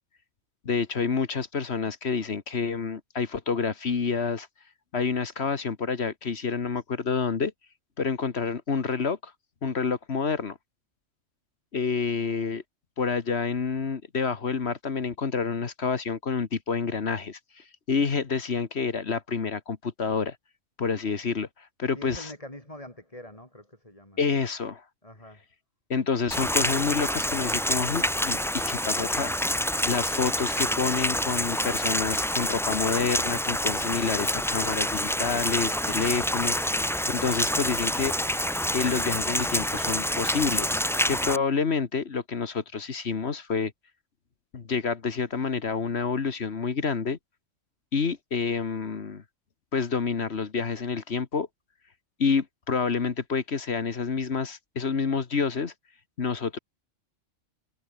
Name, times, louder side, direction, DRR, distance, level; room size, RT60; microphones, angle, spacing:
voice 1, 0.7-4.5 4.9-7.5 8.0-9.3 9.6-10.6 11.7-12.6 13.0-17.4 17.9-20.4 20.8-21.5 21.8-22.3 24.2-24.8 25.9-29.3 29.8-38.4 38.7-40.7 41.1-43.7 44.5-47.2 47.9-49.2 49.7-51.5 52.2-55.7 56.2-56.6, left 5 dB, 55° left, 1.7 m, -28 dB
voice 2, 21.9-24.2 25.0-25.4, left 1 dB, 25° left, 6.1 m, -44 dB
Rain, 26.3-41.4, equal, 5° left, 0.6 m, -27 dB
omnidirectional pair, 1.3 m